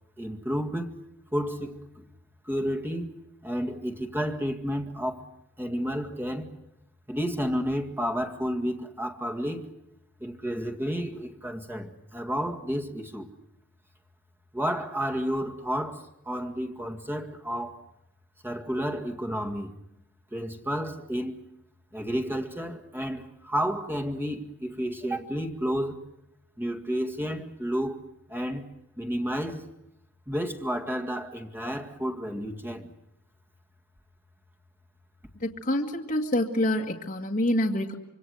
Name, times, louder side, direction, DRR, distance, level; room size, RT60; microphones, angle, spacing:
voice 1, 0.2-1.0 1.3-2.0 2.5-3.1 3.4-5.2 5.6-6.6 7.1-9.7 10.2-13.3 14.5-17.8 18.4-19.8 20.3-21.4 21.9-26.0 26.6-28.0 28.3-28.7 29.0-29.7 30.3-32.9, equal, 10° right, 2.0 m, -31 dB
voice 2, 35.4-37.9, left 1 dB, 40° left, 2.0 m, -26 dB
26.0 x 24.0 x 8.0 m
head